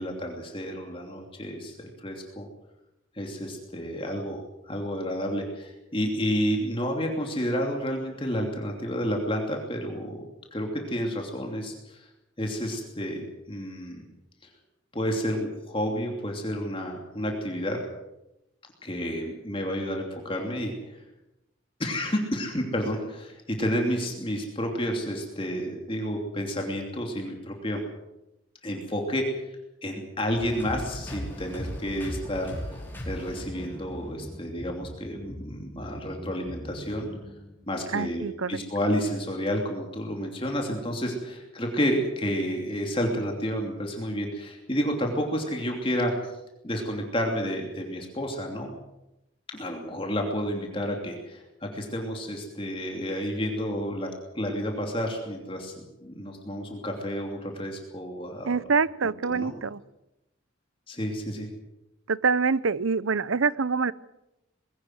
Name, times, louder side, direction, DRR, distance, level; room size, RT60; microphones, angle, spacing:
voice 1, 0.0-2.5 3.1-10.2 10.5-12.1 12.4-14.0 14.9-17.8 18.8-21.0 21.8-27.8 28.6-29.2 29.8-32.8 33.1-37.1 37.7-38.2 38.5-46.1 46.6-48.7 49.5-54.1 54.3-55.7 56.0-58.6 59.2-59.5 60.9-61.5, equal, 25° left, 1 dB, 2.9 m, -30 dB
sound 1, 30.3-37.9, equal, 10° left, 5.1 m, -38 dB
voice 2, 37.9-38.6 58.4-59.8 62.1-63.9, right 5 dB, 80° right, 19 dB, 0.7 m, -25 dB
21.0 x 17.0 x 7.9 m, 0.92 s
head